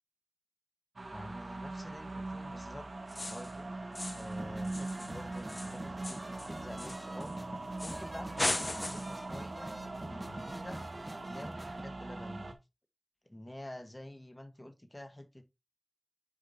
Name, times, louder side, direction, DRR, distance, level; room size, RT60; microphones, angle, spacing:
sound 1, 1.0-12.5, right 2 dB, 90° right, 1.4 m, -41 dB
voice 1, 1.1-3.7 4.1-7.3 7.8-9.7 10.0-10.8 11.3-12.5 13.3-15.4, left 1 dB, 25° left, 1.3 m, -48 dB
sound 2, 3.1-3.6 3.9-4.3 4.6-7.3 7.8-8.1 8.4-9.2, left 2 dB, 45° left, 0.8 m, -38 dB
sound 3, 4.3-11.8, right 1 dB, 25° right, 0.4 m, -47 dB
8.7 x 5.0 x 2.7 m
wide cardioid pair, 60°, 0 cm